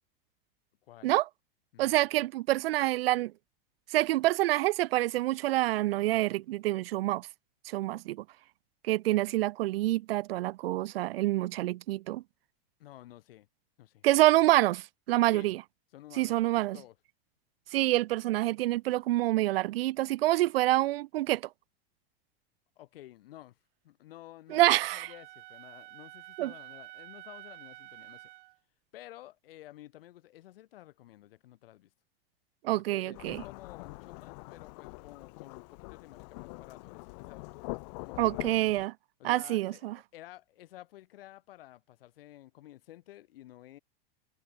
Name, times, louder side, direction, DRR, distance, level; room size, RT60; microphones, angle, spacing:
voice 1, 0.9-1.2 1.7-2.0 12.8-13.5 13.8-14.0 15.3-15.5 15.9-16.3 16.7-17.0 22.8-23.6 23.8-28.3 28.9-31.9 32.7-37.7 38.0-38.6 39.2-43.8, left 15 dB, 75° left, 6.3 m, -52 dB
voice 2, 1.8-3.3 3.9-7.3 7.7-8.2 8.8-12.2 14.0-15.6 16.2-16.8 17.7-21.4 24.5-25.1 26.4-26.5 32.6-33.4 38.2-38.9 39.2-40.0, right 17 dB, 80° right, 0.7 m, -27 dB
Wind instrument woodwind instrument, 24.5-28.6, right 18 dB, 60° right, 3.2 m, -49 dB
Thunderstorm / Rain, 33.1-38.9, left 30 dB, 45° left, 5.1 m, -44 dB
supercardioid pair, 170°, 29 cm